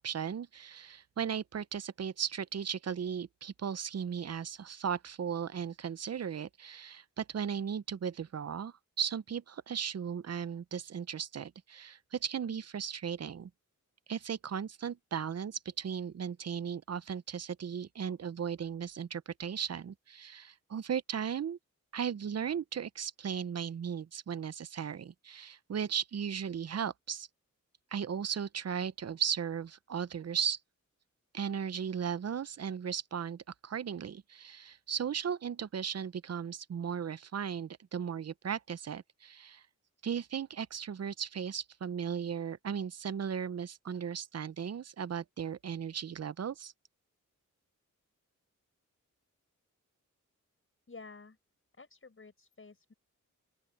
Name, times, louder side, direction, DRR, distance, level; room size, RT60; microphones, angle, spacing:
voice 1, 0.0-13.5 14.1-21.6 21.9-27.3 27.9-30.6 31.3-39.6 40.0-46.7, right 7 dB, 50° right, 0.6 m, -36 dB
voice 2, 50.9-51.4 51.8-52.9, left 4 dB, 40° left, 5.9 m, -51 dB
open air
wide cardioid pair, 95°, 32 cm